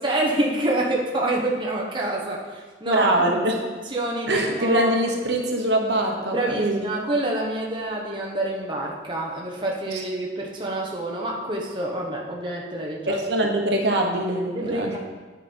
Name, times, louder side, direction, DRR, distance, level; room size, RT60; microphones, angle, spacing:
voice 1, 0.0-3.3 3.8-4.9 6.3-13.1 14.6-15.0, right 1 dB, 25° right, -2 dB, 0.9 m, -27 dB
voice 2, 2.8-3.6 4.3-6.8 9.9-10.0 13.1-14.9, right 1 dB, 70° right, 1 dB, 1.1 m, -23 dB
9.4 x 5.2 x 4.4 m, 1.4 s
head